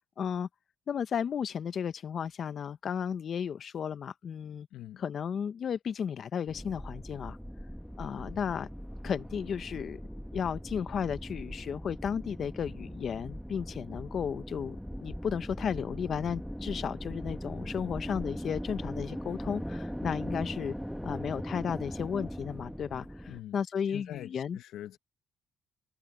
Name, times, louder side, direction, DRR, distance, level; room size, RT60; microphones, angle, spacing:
voice 1, 0.2-0.5 0.9-4.7 5.0-7.4 8.0-8.7 9.0-10.0 10.3-14.8 15.0-20.7 21.0-24.6, left 7 dB, 55° left, 1.0 m, -34 dB
voice 2, 4.7-5.0 23.3-23.6 23.9-25.0, left 13 dB, 80° left, 1.1 m, -43 dB
sound 1, 6.5-23.4, equal, ahead, 1.3 m, -40 dB
supercardioid pair, 75°, 0 cm